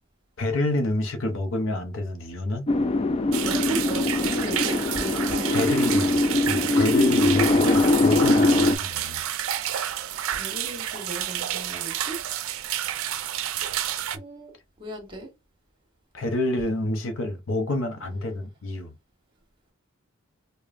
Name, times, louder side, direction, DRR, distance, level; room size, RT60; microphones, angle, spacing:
voice 1, 0.4-2.7 5.5-6.2 6.5-9.2 16.1-18.9, left 1 dB, 70° left, 0.7 m, -28 dB
sound 1, 2.7-8.8, left 2 dB, 30° left, 0.3 m, -22 dB
sound 2, 3.3-14.2, right 11 dB, 90° right, 0.4 m, -30 dB
voice 2, 3.4-5.7 10.3-12.1 14.1-14.5 14.8-15.3, right 2 dB, 25° right, 1.3 m, -36 dB
4.9 x 2.1 x 2.5 m
head